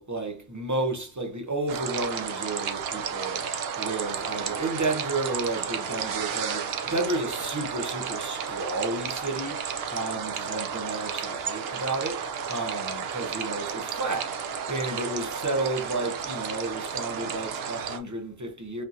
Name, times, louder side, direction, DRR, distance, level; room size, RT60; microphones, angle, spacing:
voice 1, 0.0-18.8, right 2 dB, 20° right, 0.5 m, -32 dB
sound 1, 1.7-18.0, right 7 dB, 60° right, 0.8 m, -32 dB
5.2 x 2.7 x 2.6 m
omnidirectional pair, 1.2 m